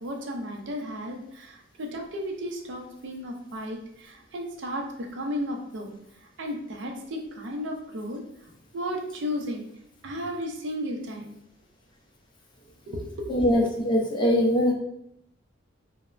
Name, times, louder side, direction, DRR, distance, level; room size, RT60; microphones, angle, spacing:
voice 1, 0.0-4.8 5.1-5.9 6.4-8.2 8.7-9.6 10.0-11.3 12.9-13.3 13.6-13.7, equal, 65° right, 2 dB, 0.4 m, -34 dB
voice 2, 13.3-14.7, equal, 25° left, -1 dB, 0.4 m, -22 dB
3.1 x 2.0 x 2.3 m, 0.77 s
head